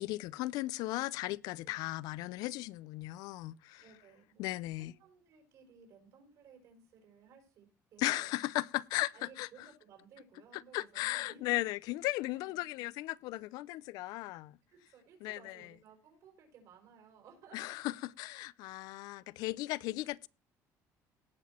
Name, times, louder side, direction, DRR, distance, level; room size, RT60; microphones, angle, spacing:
voice 1, 0.0-3.8 4.4-4.9 8.0-9.5 10.5-14.6 15.2-15.7 17.5-20.3, left 18 dB, 90° left, 0.4 m, -36 dB
voice 2, 3.8-4.5 4.8-8.3 9.1-11.5 12.3-12.7 14.7-17.8 19.8-19.9, right 6 dB, 60° right, 5.1 m, -59 dB
17.5 x 6.0 x 4.2 m
cardioid pair, 165°, 7 cm